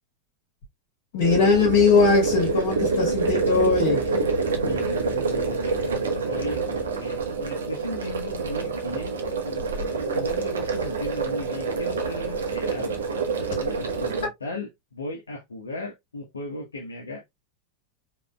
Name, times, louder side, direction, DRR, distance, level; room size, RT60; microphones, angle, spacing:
voice 1, 1.1-4.1, left 5 dB, 55° left, 1.7 m, -20 dB
sound 1, 1.2-14.3, right 4 dB, 65° right, 1.1 m, -27 dB
voice 2, 4.5-9.2 9.4-13.0 13.6-17.4, left 2 dB, 75° left, 1.1 m, -37 dB
5.1 x 3.5 x 2.3 m
figure-of-eight pair, 90°, 0 cm